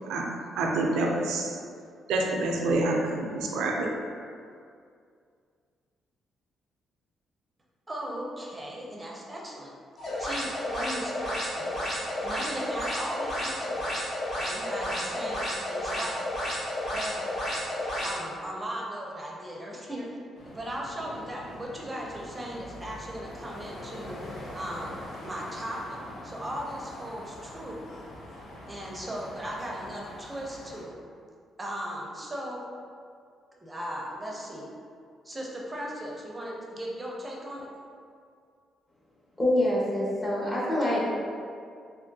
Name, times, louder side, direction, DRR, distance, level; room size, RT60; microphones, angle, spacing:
voice 1, 0.1-1.6 2.1-3.9, right 2 dB, 90° right, 0 dB, 0.4 m, -27 dB
voice 2, 7.9-9.7 10.2-11.8 12.2-13.9 14.4-15.4 15.7-16.2 16.9-17.3 18.0-20.1 20.5-24.2 24.5-27.8 28.7-30.9 31.6-32.6 33.6-34.7 35.2-37.7, equal, 20° right, -2 dB, 0.5 m, -37 dB
sound 1, 10.0-18.1, left 1 dB, 45° left, 1.3 m, -32 dB
sound 2, 20.3-30.8, left 1 dB, 70° left, 0.6 m, -44 dB
voice 3, 39.4-41.1, left 1 dB, 25° left, -6 dB, 1.0 m, -25 dB
3.4 x 2.4 x 2.6 m, 2.2 s
cardioid pair, 90°, 0 cm